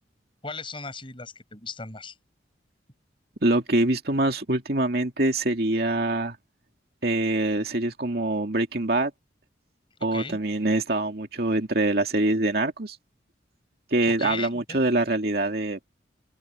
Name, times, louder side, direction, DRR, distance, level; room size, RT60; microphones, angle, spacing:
voice 1, 0.4-2.1 10.1-10.4 14.2-14.8, left 4 dB, 30° left, 6.5 m, -37 dB
voice 2, 3.4-6.4 7.0-9.1 10.0-13.0 13.9-15.9, right 2 dB, 55° right, 2.4 m, -24 dB
open air
head